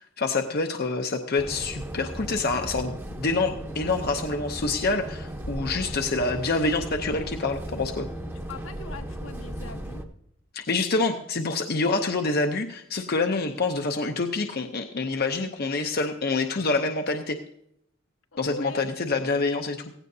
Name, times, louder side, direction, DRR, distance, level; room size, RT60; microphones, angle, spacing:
voice 1, 0.0-8.1 10.5-17.4 18.4-19.8, left 3 dB, 50° left, 5 dB, 0.8 m, -27 dB
sound 1, 1.4-10.1, equal, 10° right, 0.9 m, -36 dB
voice 2, 8.5-10.0 18.3-19.4, left 3 dB, 75° left, 5 dB, 1.3 m, -42 dB
16.5 x 16.0 x 2.7 m, 0.76 s
head